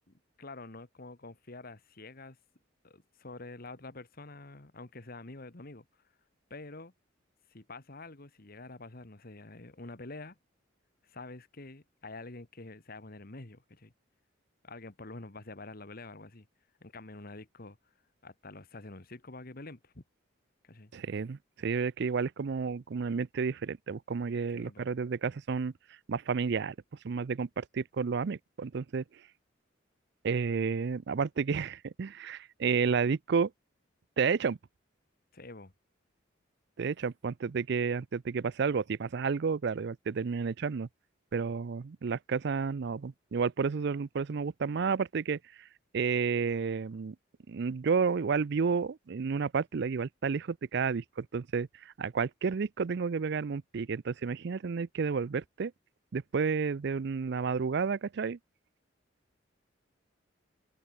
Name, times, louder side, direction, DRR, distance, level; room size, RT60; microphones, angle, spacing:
voice 1, 0.1-2.4 2.8-5.8 6.5-6.9 7.5-10.4 11.0-13.9 14.6-16.5 16.8-17.8 18.2-20.0 20.6-20.9 24.5-24.8 35.3-35.7, left 2 dB, 50° left, 1.7 m, -47 dB
voice 2, 20.9-25.7 26.1-26.8 27.0-29.0 30.2-33.5 34.2-34.6 36.8-40.9 41.3-45.7 45.9-47.2 47.5-55.7 56.1-58.4, right 5 dB, 60° right, 0.4 m, -31 dB
open air
head